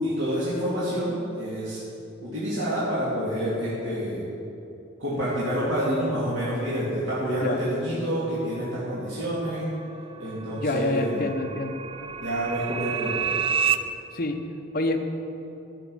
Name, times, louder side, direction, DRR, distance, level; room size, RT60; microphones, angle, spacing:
voice 1, 0.0-1.8 2.2-4.3 5.0-9.7 10.2-11.3 12.2-13.2, equal, 75° right, -10 dB, 2.6 m, -28 dB
sound 1, 9.4-13.8, right 7 dB, 25° right, 0.3 m, -30 dB
voice 2, 10.6-11.8 14.1-14.4 14.7-15.1, left 2 dB, 45° left, 4 dB, 0.9 m, -27 dB
12.5 x 7.6 x 6.2 m, 2.8 s
head